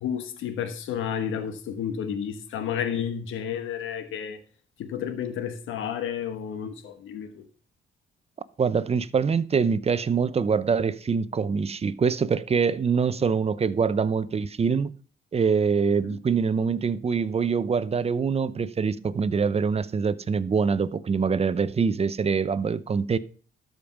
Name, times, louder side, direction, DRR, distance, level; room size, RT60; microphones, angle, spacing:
voice 1, 0.0-4.4 4.8-7.4 16.0-16.2, left 8 dB, 85° left, 1.2 m, -31 dB
voice 2, 8.6-14.9 15.3-23.2, right 5 dB, 30° right, 0.7 m, -24 dB
12.5 x 5.2 x 6.0 m
cardioid pair, 90°, 20 cm